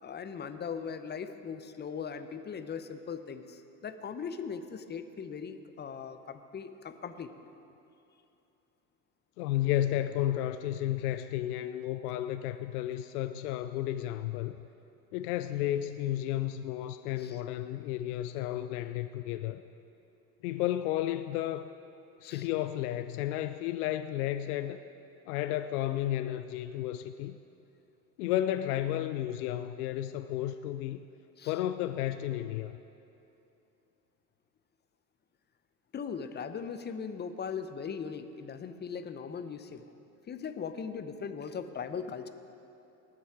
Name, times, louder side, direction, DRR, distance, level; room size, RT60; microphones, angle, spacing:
voice 1, 0.0-7.3 17.2-17.4 22.2-22.5 31.4-31.6 35.9-39.8 40.3-42.3, left 6 dB, 20° left, 10 dB, 0.7 m, -39 dB
voice 2, 9.4-14.6 15.1-19.6 20.4-21.7 22.2-24.8 25.3-27.4 28.2-31.0 31.5-32.8, left 13 dB, 70° left, 11 dB, 0.6 m, -32 dB
19.5 x 7.6 x 4.7 m, 2.9 s
hypercardioid pair, 85°, 47 cm